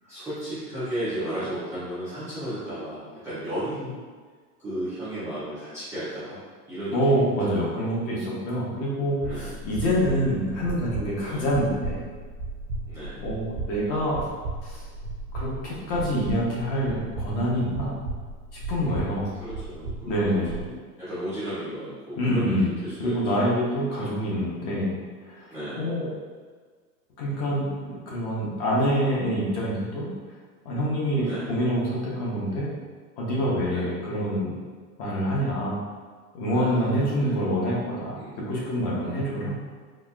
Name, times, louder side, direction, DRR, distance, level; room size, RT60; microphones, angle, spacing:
voice 1, 0.0-4.0 4.6-6.4 6.7-7.5 9.2-9.6 10.0-10.4 11.2-11.5 12.9-13.3 15.6-16.0 18.8-23.2 24.0-24.6 25.5-25.8 31.2-31.5 33.7-33.8 35.0-35.3 36.5-37.4 38.2-38.4 39.0-39.3, right 1 dB, 5° right, -16 dB, 0.4 m, -35 dB
voice 2, 6.9-12.1 13.2-14.2 14.6-14.8 15.3-18.0 18.7-19.3 20.0-20.6 22.1-22.7 23.0-25.0 25.3-25.4 25.7-26.1 27.2-30.1 30.6-32.7 33.2-34.6 35.0-35.7 36.3-39.6, equal, 30° left, -5 dB, 0.8 m, -26 dB
sound 1, 9.2-20.7, right 3 dB, 65° right, 0.9 m, -35 dB
4.1 x 2.4 x 2.3 m, 1.5 s
supercardioid pair, 135°, 49 cm